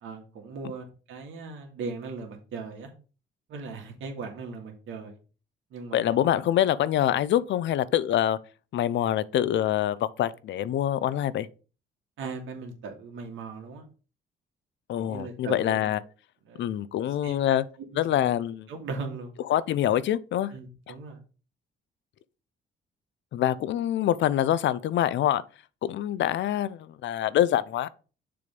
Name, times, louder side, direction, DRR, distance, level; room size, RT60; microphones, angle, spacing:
voice 1, 0.0-2.9 3.5-5.2 5.7-6.1 12.2-13.8 15.0-15.9 16.5-16.6 17.2-17.6 17.9-18.3 18.7-19.3 20.5-21.2, right 4 dB, 80° right, 1.9 m, -38 dB
voice 2, 5.9-8.4 8.7-11.5 14.9-16.0 16.6-17.6 18.0-18.7 19.5-20.5 20.9-21.0 23.3-25.4 25.8-27.9, left 11 dB, 70° left, 0.5 m, -25 dB
6.7 x 3.5 x 5.3 m
cardioid pair, 90°, 20 cm